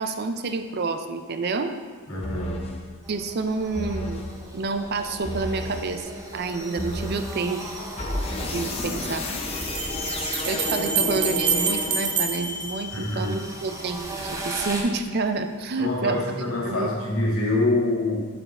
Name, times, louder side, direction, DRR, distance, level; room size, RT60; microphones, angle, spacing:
voice 1, 0.0-1.7 3.1-4.3 4.5-6.0 6.3-7.6 8.4-9.3 10.5-16.4 16.7-16.9, right 3 dB, 50° right, 8 dB, 0.5 m, -28 dB
voice 2, 2.1-2.6 12.9-13.4 15.8-18.2, left 2 dB, 75° left, -4 dB, 1.8 m, -25 dB
sound 1, 2.2-2.8 3.7-4.3 5.2-5.8 6.8-7.3 8.0-12.4, left 1 dB, 30° left, 0.7 m, -31 dB
sound 2, 3.0-14.8, right 1 dB, 15° right, 0.7 m, -39 dB
sound 3, 9.6-13.6, right 5 dB, 80° right, 1.0 m, -27 dB
7.1 x 5.5 x 4.1 m, 1.5 s
head